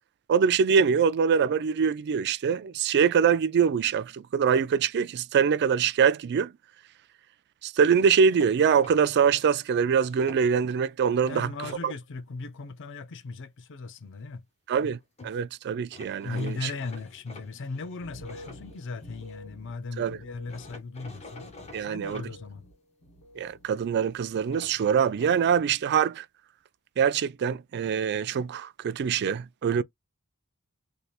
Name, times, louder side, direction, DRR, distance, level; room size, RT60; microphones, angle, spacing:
voice 1, 0.3-6.5 7.6-11.5 11.8-11.9 14.7-15.0 15.2-16.7 20.0-20.2 21.7-22.2 23.4-26.3 27.0-29.8, right 6 dB, 50° right, 0.3 m, -24 dB
sound 1, 8.0-9.4 10.0-10.8 11.2-11.8 14.9-15.0 15.2-15.3 15.9-19.4 20.5-22.3 24.5-25.5, left 2 dB, 30° left, 1.1 m, -48 dB
voice 2, 11.3-14.4 16.2-22.6, left 3 dB, 55° left, 0.5 m, -38 dB
sound 2, 17.9-23.7 24.0-24.7 25.0-25.5, equal, 85° left, 1.8 m, -50 dB
3.2 x 2.8 x 2.4 m
head